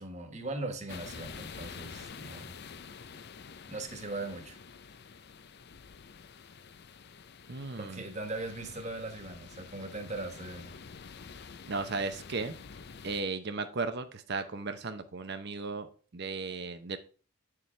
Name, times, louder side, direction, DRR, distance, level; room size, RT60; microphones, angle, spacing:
voice 1, 0.0-2.6 3.7-4.6 7.8-10.7, right 2 dB, 35° right, 1.5 m, -39 dB
sound 1, 0.9-13.2, left 6 dB, 50° left, 0.5 m, -48 dB
voice 2, 7.5-8.1 11.7-12.5 13.0-15.9 16.1-17.0, right 3 dB, 50° right, 0.7 m, -35 dB
8.9 x 6.7 x 3.2 m
head